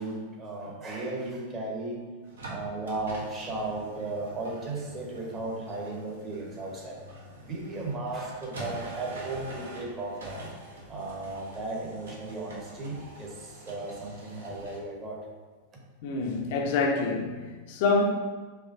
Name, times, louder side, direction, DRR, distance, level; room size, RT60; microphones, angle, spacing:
voice 1, 0.0-2.0 2.4-7.0 7.4-10.4 10.9-15.2, right 2 dB, 25° right, 1.0 m, -35 dB
sound 1, 2.2-14.8, right 1 dB, 70° right, 0.8 m, -44 dB
voice 2, 16.0-18.0, left 3 dB, 50° left, 0.6 m, -26 dB
4.6 x 3.1 x 2.6 m
figure-of-eight pair, 90°, 0 cm